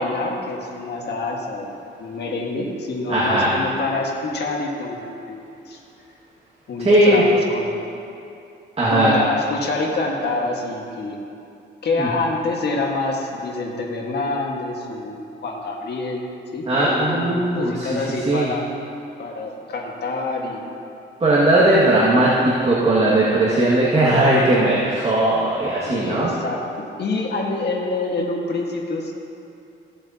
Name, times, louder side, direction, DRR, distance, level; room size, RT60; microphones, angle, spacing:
voice 1, 0.0-5.8 6.7-7.7 8.9-11.2 11.8-16.2 16.5-18.7 19.2-20.6 25.8-29.1, left 2 dB, 55° left, 0 dB, 1.7 m, -26 dB
voice 2, 3.1-3.5 6.8-7.2 8.8-9.1 12.0-12.1 16.7-18.0 18.3-18.5 21.2-26.3, right 1 dB, 30° right, -8 dB, 2.0 m, -18 dB
16.0 x 7.9 x 2.9 m, 2.7 s
cardioid pair, 90°, 20 cm